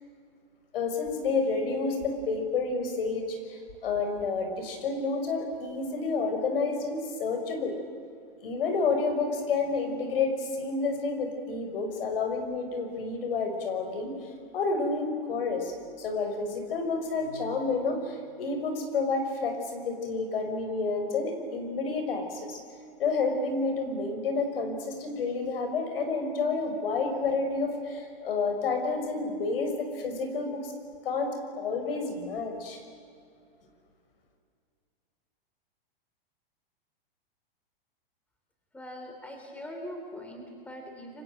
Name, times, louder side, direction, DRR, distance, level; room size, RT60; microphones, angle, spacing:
voice 1, 0.7-7.7 8.4-14.2 14.5-22.6 23.0-30.7 31.0-32.8, left 4 dB, 75° left, 6 dB, 6.2 m, -30 dB
voice 2, 38.7-41.2, equal, 5° left, 2 dB, 3.4 m, -42 dB
29.5 x 24.5 x 7.9 m, 2.4 s
supercardioid pair, 160°, 29 cm